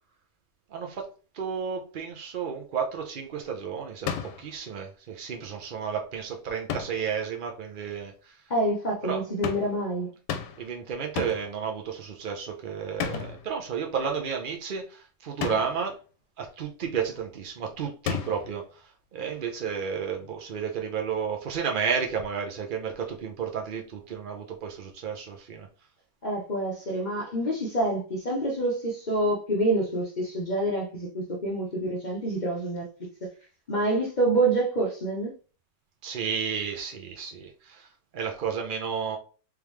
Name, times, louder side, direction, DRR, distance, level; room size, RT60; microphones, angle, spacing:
voice 1, 0.7-1.1 1.3-8.1 9.0-9.2 10.6-16.0 16.4-18.6 19.1-25.7 36.0-37.9 38.1-39.2, right 6 dB, 75° right, 0.4 m, -32 dB
sound 1, 4.1-4.5 6.7-7.1 9.4-9.8 10.3-10.7 11.2-11.6 13.0-13.5 15.4-15.9 18.1-18.6, left 7 dB, 80° left, 1.2 m, -33 dB
voice 2, 8.5-10.1 26.2-32.9 33.7-35.3, right 1 dB, 45° left, 0.6 m, -27 dB
3.5 x 3.5 x 3.1 m
omnidirectional pair, 1.9 m